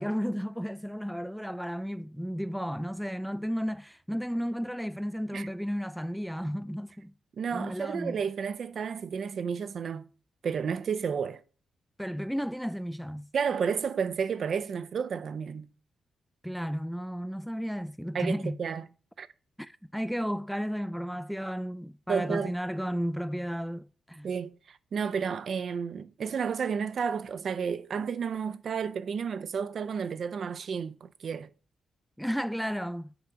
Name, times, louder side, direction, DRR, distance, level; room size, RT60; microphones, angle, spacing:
voice 1, 0.0-7.1 7.5-8.2 12.0-13.3 16.4-18.6 19.6-24.3 32.2-33.1, equal, ahead, 0.3 m, -33 dB
voice 2, 7.4-10.1 10.4-11.4 13.3-15.7 18.1-18.9 19.2-19.3 22.1-22.5 24.2-31.5, right 6 dB, 65° right, 0.5 m, -31 dB
8.0 x 3.6 x 5.0 m
cardioid pair, 65°, 0 cm